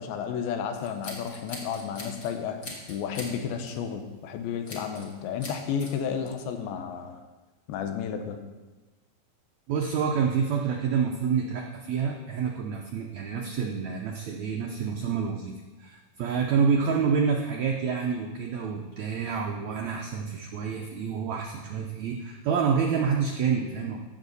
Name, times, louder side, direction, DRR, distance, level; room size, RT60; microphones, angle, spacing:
voice 1, 0.0-2.6 2.9-7.2 7.7-8.4, left 7 dB, 90° left, 6 dB, 2.8 m, -32 dB
Scissors, 0.7-2.3 2.6-3.3 3.7-3.9 4.6-5.1 5.4-5.9, left 2 dB, 40° left, 1.2 m, -41 dB
voice 2, 9.7-15.5 15.8-24.0, right 6 dB, 80° right, 1 dB, 1.6 m, -28 dB
15.0 x 6.5 x 4.1 m, 1.2 s
omnidirectional pair, 4.2 m